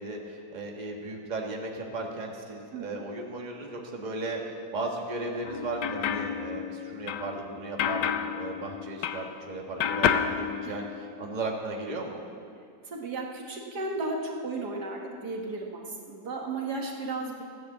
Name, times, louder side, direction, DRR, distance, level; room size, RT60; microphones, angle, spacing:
voice 1, 0.0-4.4 4.7-12.2, right 2 dB, 25° right, 0 dB, 1.6 m, -36 dB
sound 1, 5.4-9.5 9.8-11.3, left 8 dB, 90° left, 1.3 m, -30 dB
voice 2, 12.9-17.4, right 2 dB, 75° right, 0 dB, 2.3 m, -34 dB
15.5 x 10.0 x 7.8 m, 2.3 s
omnidirectional pair, 1.8 m